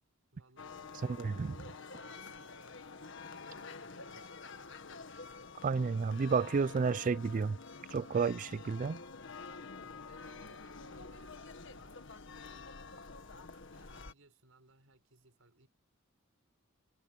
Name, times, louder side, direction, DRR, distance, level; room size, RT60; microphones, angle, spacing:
voice 1, 0.3-2.6 3.1-4.4 9.2-12.8 13.7-15.7, right 2 dB, 75° right, 5.1 m, -66 dB
sound 1, 0.6-14.1, left 4 dB, 60° left, 1.7 m, -48 dB
voice 2, 1.2-1.5 5.6-7.6 7.9-9.0, right 5 dB, 40° right, 0.3 m, -31 dB
head